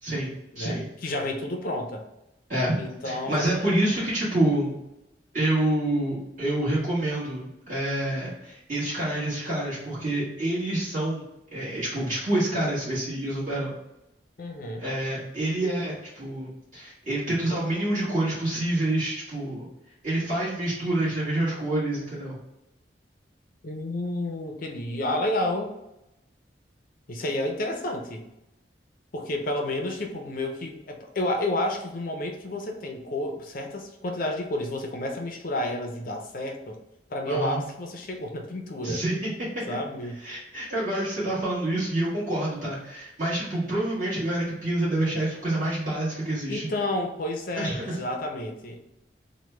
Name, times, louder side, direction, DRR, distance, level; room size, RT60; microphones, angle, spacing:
voice 1, 0.0-0.8 2.5-2.7 3.0-4.7 5.3-11.2 11.5-13.7 14.8-19.7 20.0-22.4 37.3-37.6 38.8-39.6 40.2-46.7 47.5-48.0, right 1 dB, 45° right, -10 dB, 1.3 m, -27 dB
voice 2, 0.6-2.0 2.8-3.8 14.4-14.8 23.6-25.7 27.1-28.2 29.1-36.8 37.1-39.0 39.7-40.2 46.5-48.8, left 1 dB, 50° left, 2 dB, 0.5 m, -30 dB
3.1 x 2.1 x 3.3 m, 0.89 s
head